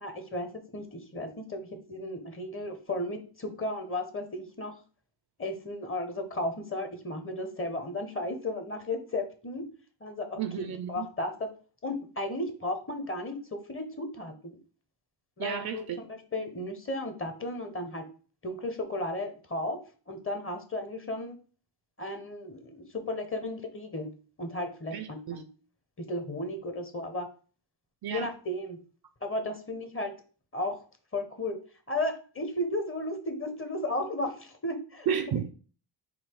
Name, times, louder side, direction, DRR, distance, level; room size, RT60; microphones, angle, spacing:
voice 1, 0.0-4.7 5.4-9.6 10.0-11.3 11.8-14.6 15.4-18.0 18.4-19.8 20.1-21.4 22.0-24.1 24.4-25.5 26.0-27.3 28.1-28.8 29.2-30.1 30.5-30.8 31.1-31.6 31.9-35.1, left 1 dB, 30° left, 1.0 m, -34 dB
voice 2, 10.4-11.1 15.4-16.0 24.9-25.4 28.0-28.3 35.1-35.5, right 8 dB, 55° right, 0.5 m, -32 dB
4.1 x 2.8 x 4.5 m
cardioid pair, 85°, 44 cm